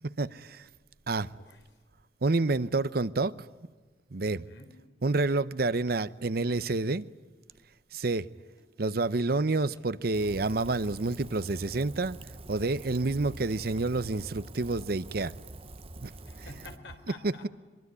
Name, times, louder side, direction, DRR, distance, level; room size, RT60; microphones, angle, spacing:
voice 1, 0.0-0.7 1.1-1.3 2.2-3.3 4.1-4.4 5.0-7.1 7.9-8.3 8.8-12.2 12.5-15.3 16.0-16.1 17.2-17.5, right 3 dB, 55° right, 0.8 m, -28 dB
voice 2, 1.3-1.6 4.2-4.8 16.2-17.5, left 3 dB, 80° left, 3.8 m, -49 dB
sound 1, 7.1-7.2 7.5-7.6 8.0-8.2 8.6-8.7 9.2-9.3 9.8-10.0 10.4-10.6 11.4-11.6 12.9-13.2 14.3-14.5 15.3-15.6, right 1 dB, 20° left, 8.0 m, -64 dB
Rain, 10.1-16.8, right 2 dB, 35° right, 1.0 m, -45 dB
23.5 x 23.0 x 9.5 m
head